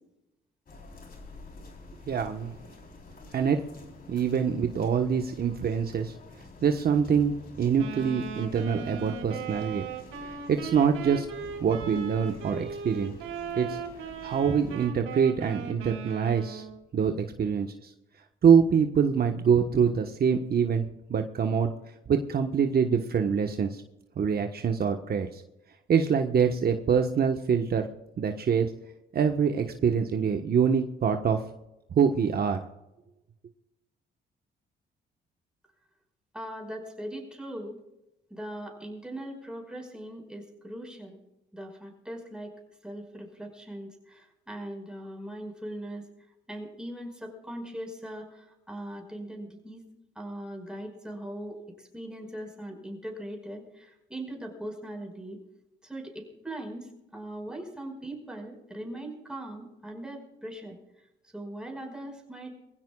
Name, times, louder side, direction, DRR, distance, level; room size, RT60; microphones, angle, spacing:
sound 1, 0.7-14.9, left 3 dB, 45° left, 4.0 m, -49 dB
voice 1, 2.1-2.5 3.3-3.6 4.1-6.1 6.6-9.9 10.2-11.3 11.6-13.1 13.6-13.8 14.2-16.6 16.9-17.9 18.4-20.8 21.1-21.7 22.1-23.8 24.2-25.4 25.9-27.9 28.2-28.7 29.1-31.4 31.9-32.6, right 7 dB, 50° right, 5 dB, 1.3 m, -25 dB
Wind instrument woodwind instrument, 7.8-16.8, right 6 dB, 90° right, 2.3 m, -38 dB
voice 2, 36.3-37.8 38.3-41.2 41.5-42.5 42.8-46.1 46.5-49.8 50.2-55.4 55.8-60.8 61.3-62.6, right 1 dB, 5° right, 2 dB, 5.3 m, -40 dB
24.0 x 16.0 x 2.4 m, 0.94 s
cardioid pair, 90°, 20 cm